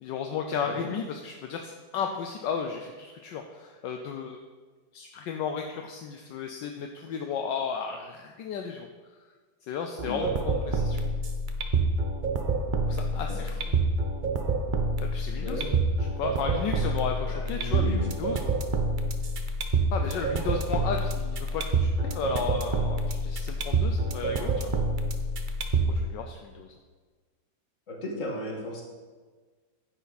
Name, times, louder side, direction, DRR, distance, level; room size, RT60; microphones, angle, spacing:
voice 1, 0.0-4.4 4.9-8.9 9.7-11.0 12.9-13.7 15.0-15.6 16.2-18.5 19.9-24.7 25.9-26.7, left 6 dB, 75° left, 4 dB, 1.3 m, -34 dB
sound 1, 10.0-26.0, right 3 dB, 60° right, 0.5 m, -27 dB
voice 2, 15.3-15.7 17.3-18.0 25.9-26.0 27.9-28.8, left 1 dB, 45° left, -1 dB, 2.2 m, -35 dB
10.0 x 9.3 x 4.1 m, 1.4 s
omnidirectional pair, 2.0 m